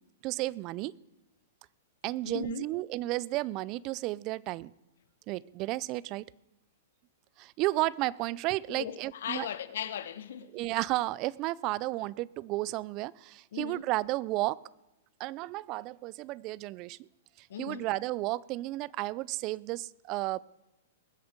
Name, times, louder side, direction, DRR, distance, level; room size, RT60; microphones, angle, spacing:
voice 1, 0.2-0.9 2.0-4.7 5.3-6.2 7.4-9.5 10.5-14.6 15.2-17.1 17.4-20.4, right 18 dB, 35° right, 0.4 m, -33 dB
voice 2, 2.3-2.7 8.7-10.5 13.5-13.8 17.5-17.9, left 9 dB, 70° left, 1.1 m, -38 dB
20.5 x 7.9 x 5.2 m
hypercardioid pair, 145°, 0 cm